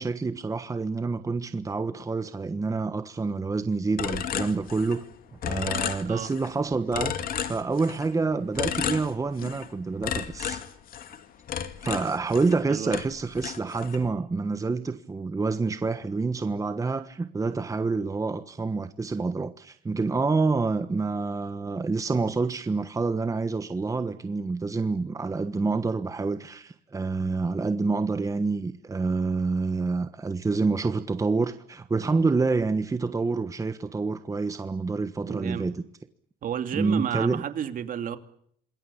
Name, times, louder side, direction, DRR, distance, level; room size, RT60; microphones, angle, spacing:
voice 1, 0.0-5.0 5.4-7.2 7.5-10.6 11.8-35.8 36.7-37.4, right 4 dB, 20° right, 1.3 m, -27 dB
sound 1, 4.0-5.1 5.4-6.5 6.9-8.1 8.6-9.7 10.0-12.6 12.9-14.1, left 8 dB, 60° left, 2.4 m, -32 dB
voice 2, 12.7-13.0 35.3-35.7 36.4-38.2, right 9 dB, 55° right, 2.8 m, -31 dB
27.5 x 21.0 x 8.6 m
cardioid pair, 110°, 17 cm